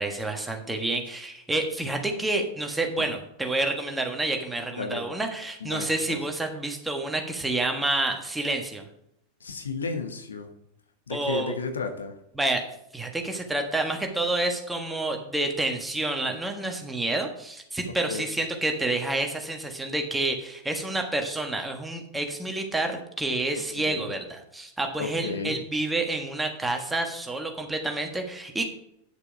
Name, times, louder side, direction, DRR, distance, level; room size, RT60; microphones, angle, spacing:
voice 1, 0.0-8.9 11.1-11.6 12.4-12.7 12.9-28.7, right 2 dB, 5° right, 3 dB, 1.5 m, -29 dB
voice 2, 4.7-5.0 5.6-6.2 9.4-10.5 11.1-12.2 18.1-18.2 23.7-24.1 25.0-25.6, left 4 dB, 70° left, 6 dB, 1.2 m, -33 dB
9.9 x 6.7 x 4.7 m, 0.77 s
figure-of-eight pair, 90°, 0 cm